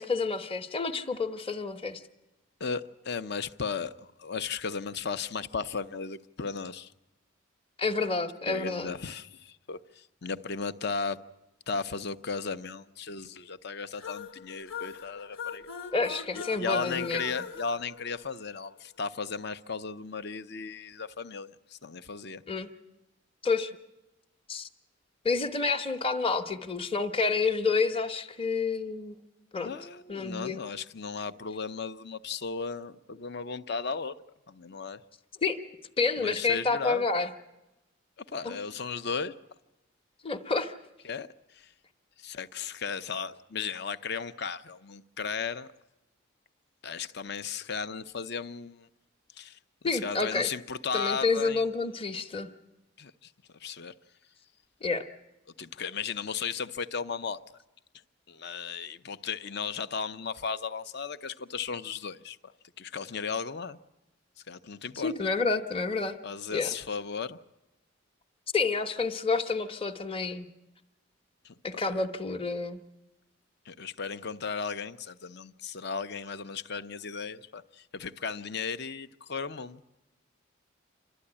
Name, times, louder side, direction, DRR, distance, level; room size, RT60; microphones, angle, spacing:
voice 1, 0.0-2.0 7.8-8.9 15.9-17.2 22.5-22.7 23.4-23.7 24.5-24.7 25.2-29.2 29.5-29.7 30.1-30.6 35.4-35.6 36.0-37.3 38.4-38.6 40.2-40.7 49.8-50.5 50.9-52.5 54.8-55.1 65.0-66.2 66.5-66.7 68.5-70.5 71.6-72.8, left 4 dB, 25° left, 1.0 m, -29 dB
voice 2, 2.6-6.9 8.5-11.2 11.7-15.7 16.3-22.4 29.6-34.2 34.5-35.0 36.2-37.1 38.3-39.3 41.0-41.3 41.5-41.7 42.2-45.7 46.8-48.9 49.4-49.6 49.8-51.7 53.0-53.3 53.6-53.9 55.6-57.6 58.3-62.4 62.8-63.8 64.5-65.1 66.2-67.4 71.4-72.1 73.7-79.8, left 5 dB, 55° left, 0.7 m, -35 dB
sound 1, 14.0-18.7, left 7 dB, 85° left, 1.4 m, -41 dB
28.0 x 13.0 x 9.9 m
head